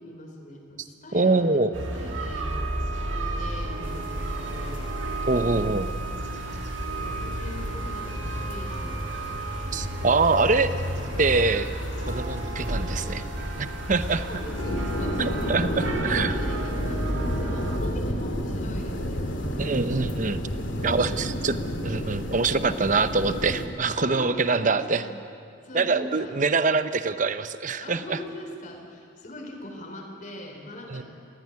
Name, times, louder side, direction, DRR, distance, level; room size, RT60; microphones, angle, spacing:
voice 1, 0.0-1.6 1.9-2.6 3.0-5.3 7.0-9.1 13.9-15.8 16.1-19.6 20.5-21.6 22.4-22.8 24.0-25.2 25.6-26.3 27.8-31.0, left 1 dB, 45° left, 3 dB, 3.5 m, -41 dB
voice 2, 1.1-1.7 5.3-5.9 9.7-10.7 11.2-11.7 12.1-13.2 13.6-14.2 15.2-16.4 19.6-20.4 20.8-25.0 25.7-28.2 30.9-31.0, right 3 dB, 40° right, 12 dB, 0.8 m, -24 dB
sound 1, 1.7-17.8, right 1 dB, 80° right, 1.9 m, -32 dB
sound 2, 3.8-23.7, equal, 80° left, 2.4 m, -33 dB
19.5 x 15.5 x 9.6 m, 2.5 s
head